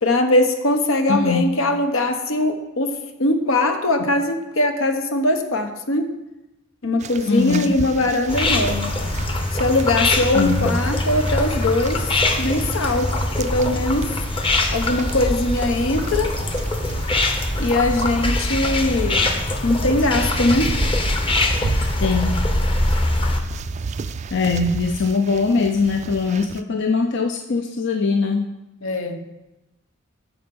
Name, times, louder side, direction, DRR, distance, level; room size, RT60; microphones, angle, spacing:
voice 1, 0.0-2.9 3.2-6.1 6.8-8.9 9.6-14.1 14.7-16.3 17.6-19.3 19.6-20.7 28.8-29.2, left 2 dB, 80° left, 6 dB, 1.0 m, -21 dB
voice 2, 1.1-1.5 7.3-7.7 10.3-10.7 22.0-22.4 24.3-28.5, left 4 dB, 60° left, 3 dB, 0.6 m, -21 dB
sound 1, 7.0-26.6, right 4 dB, 35° right, 0.3 m, -35 dB
sound 2, 8.3-23.4, left 2 dB, 25° left, 0.8 m, -23 dB
12.5 x 4.4 x 5.4 m, 0.99 s
head